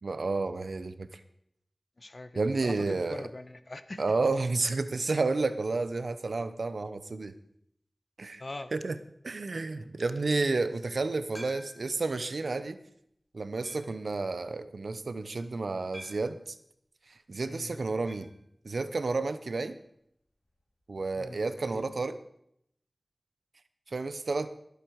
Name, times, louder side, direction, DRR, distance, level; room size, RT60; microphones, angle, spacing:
voice 1, 0.0-1.2 2.3-3.3 4.0-7.3 8.2-8.4 8.7-9.0 9.2-12.8 13.3-16.6 17.1-18.3 18.6-19.8 20.9-22.2 23.9-24.5, right 3 dB, 85° right, 12 dB, 0.8 m, -31 dB
voice 2, 2.0-4.1 8.4-8.7 17.4-17.8 21.1-22.0, left 2 dB, 55° left, 11 dB, 1.1 m, -43 dB
sound 1, 11.3-12.0 12.6-12.7 13.6-14.0 15.9-16.4 18.1-18.4 18.6-18.7 19.0-19.1 21.1-21.2, equal, 30° left, 5.9 m, -48 dB
18.0 x 8.3 x 4.7 m, 0.72 s
wide cardioid pair, 45°, 0 cm